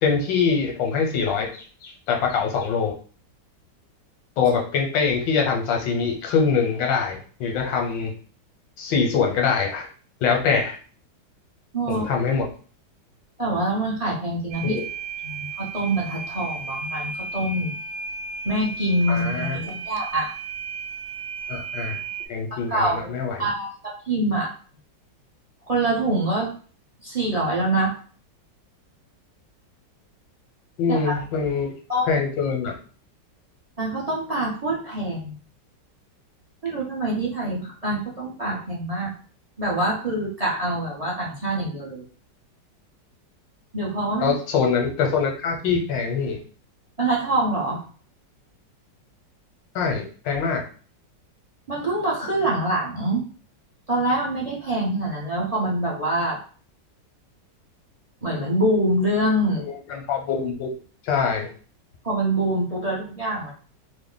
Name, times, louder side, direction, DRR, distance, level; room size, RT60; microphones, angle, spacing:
voice 1, 0.0-2.9 4.4-8.1 8.8-9.9 10.2-10.8 11.9-12.5 14.6-14.8 19.1-19.6 21.5-22.0 22.3-23.5 30.8-31.7 32.1-32.7 44.2-46.4 49.7-50.6 59.9-60.7 61.0-61.5, left 5 dB, 85° left, 1 dB, 1.4 m, -24 dB
voice 2, 11.7-12.1 13.4-14.8 15.2-17.8 18.4-20.3 22.5-23.7 24.0-24.5 25.6-26.5 27.0-28.0 30.9-31.2 31.9-32.1 33.8-35.3 36.6-39.1 39.6-42.0 43.7-44.4 47.0-47.8 51.7-53.2 53.9-56.4 58.2-59.6 62.0-63.5, right 1 dB, 40° right, -5 dB, 0.5 m, -25 dB
sound 1, 14.5-22.3, right 5 dB, 75° right, 0.8 m, -34 dB
3.2 x 2.1 x 3.8 m, 0.41 s
omnidirectional pair, 1.9 m